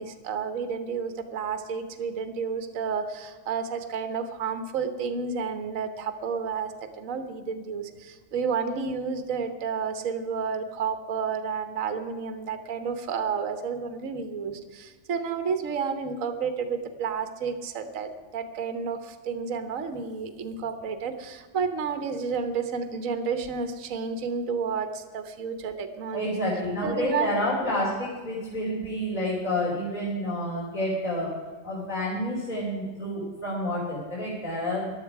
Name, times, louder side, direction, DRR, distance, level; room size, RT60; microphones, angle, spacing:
voice 1, 0.0-26.3 26.8-27.9, right 6 dB, 55° right, 9 dB, 1.4 m, -31 dB
voice 2, 26.1-31.3 31.6-34.9, left 1 dB, 25° left, -7 dB, 3.3 m, -29 dB
14.5 x 11.5 x 4.8 m, 1.5 s
omnidirectional pair, 1.8 m